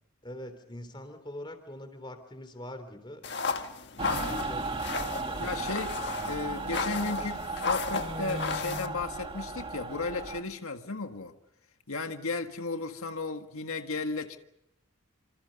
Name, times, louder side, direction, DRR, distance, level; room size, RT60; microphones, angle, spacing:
voice 1, 0.2-3.2 4.4-5.6, left 1 dB, 20° left, 3.4 m, -43 dB
sound 1, 3.2-8.9, left 4 dB, 50° left, 1.5 m, -34 dB
voice 2, 4.0-4.5 5.4-5.9 6.2-11.3 11.9-14.4, left 3 dB, 85° left, 1.7 m, -35 dB
Mechanical fan, 4.0-10.4, right 3 dB, 25° right, 1.9 m, -35 dB
28.0 x 27.0 x 5.4 m
head